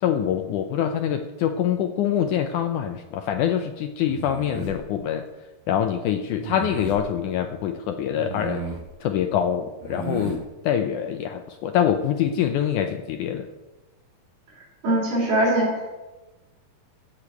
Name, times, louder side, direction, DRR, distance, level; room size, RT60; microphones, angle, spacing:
voice 1, 0.0-5.2 5.7-8.6 9.0-13.5, left 9 dB, 80° left, 6 dB, 1.8 m, -25 dB
sound 1, 4.1-4.8 6.4-7.0 8.2-8.9 9.8-10.4, right 5 dB, 90° right, 4.3 m, -34 dB
voice 2, 14.6-15.9, right 1 dB, 70° right, -6 dB, 4.9 m, -23 dB
14.5 x 5.1 x 8.4 m, 1.1 s
omnidirectional pair, 4.2 m